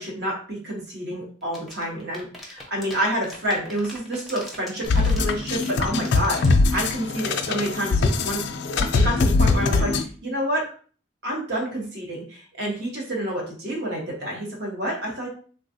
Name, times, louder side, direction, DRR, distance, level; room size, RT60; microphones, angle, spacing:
voice 1, 0.0-8.4 8.8-9.9 10.2-10.6 11.2-15.3, equal, 55° right, -1 dB, 1.0 m, -28 dB
sound 1, 1.4-6.5, left 1 dB, ahead, 0.6 m, -40 dB
sound 2, 4.9-10.0, left 3 dB, 55° left, 0.3 m, -22 dB
3.4 x 2.3 x 2.6 m, 0.42 s
head